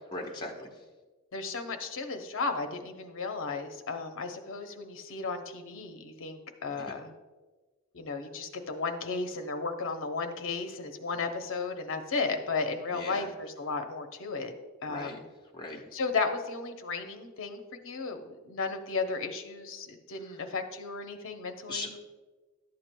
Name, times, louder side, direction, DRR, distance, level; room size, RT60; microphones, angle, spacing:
voice 1, 0.1-0.7 6.7-6.9 12.9-13.3 14.9-15.2 15.5-15.8 21.7-22.0, left 2 dB, 20° left, -1 dB, 1.0 m, -38 dB
voice 2, 1.3-7.1 7.9-14.5 14.8-15.2 15.9-22.0, left 4 dB, 60° left, 6 dB, 0.7 m, -34 dB
11.5 x 7.7 x 2.2 m, 1.3 s
head